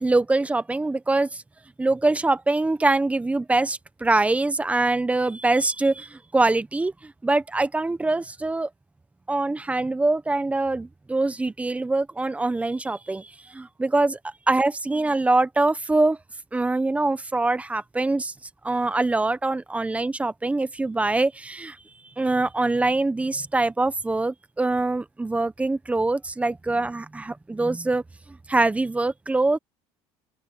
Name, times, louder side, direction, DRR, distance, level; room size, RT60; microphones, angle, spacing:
voice 1, 0.0-1.4 1.8-8.7 9.3-14.2 14.5-16.2 16.5-18.3 18.6-21.8 22.2-28.0 28.5-29.6, right 2 dB, 10° right, 1.1 m, -24 dB
open air
supercardioid pair, 105°, 11 cm